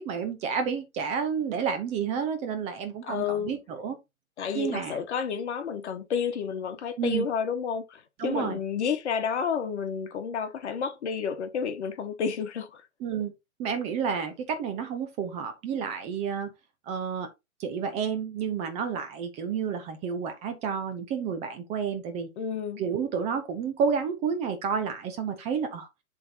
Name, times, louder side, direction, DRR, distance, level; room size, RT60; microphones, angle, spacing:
voice 1, 0.0-4.0 4.5-5.0 7.0-7.3 8.2-8.6 13.0-13.3 13.6-16.5 16.9-17.3 17.6-22.3 22.8-25.9, right 6 dB, 15° right, 0.7 m, -30 dB
voice 2, 3.0-3.5 4.4-12.9 22.4-22.8, left 6 dB, 50° left, 1.5 m, -30 dB
11.0 x 3.7 x 2.8 m
figure-of-eight pair, 125°, 43 cm